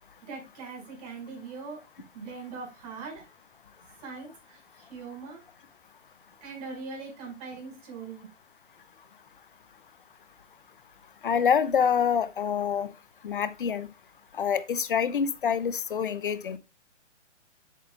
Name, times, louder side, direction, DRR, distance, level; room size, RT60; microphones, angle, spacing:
voice 1, 0.2-1.8 2.1-3.3 4.0-5.4 6.4-8.3, right 4 dB, 35° right, 5.3 m, -41 dB
voice 2, 11.2-12.9 13.2-13.9 14.3-16.6, left 7 dB, 45° left, 0.7 m, -26 dB
9.8 x 8.6 x 2.3 m
figure-of-eight pair, 130°, 36 cm